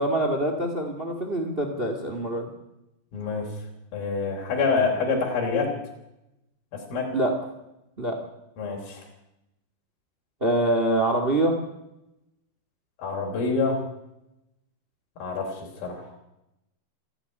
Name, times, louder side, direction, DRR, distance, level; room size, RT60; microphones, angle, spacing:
voice 1, 0.0-2.5 7.1-7.3 8.0-8.2 10.4-11.5, right 1 dB, 40° right, 5 dB, 0.8 m, -25 dB
voice 2, 3.1-3.5 3.9-5.7 6.7-7.1 8.6-9.1 13.0-13.8 15.2-16.1, left 4 dB, 60° left, -2 dB, 5.2 m, -27 dB
28.0 x 10.0 x 9.4 m, 0.89 s
omnidirectional pair, 4.9 m